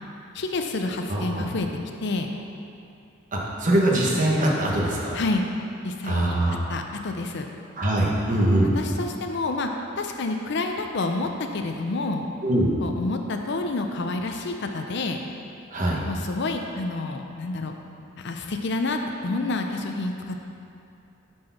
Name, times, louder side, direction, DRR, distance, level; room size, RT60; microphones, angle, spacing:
voice 1, 0.3-1.7 2.0-2.3 5.1-5.5 5.8-7.4 8.7-9.7 9.9-12.3 12.8-15.2 16.1-17.7 18.2-20.4, left 2 dB, 55° left, 4 dB, 0.5 m, -28 dB
voice 2, 1.1-1.4 3.3-5.2 6.0-6.5 7.8-8.7 12.4-12.7 15.7-16.0, right 1 dB, 40° right, -3 dB, 1.1 m, -22 dB
7.6 x 4.6 x 5.8 m, 2.6 s
head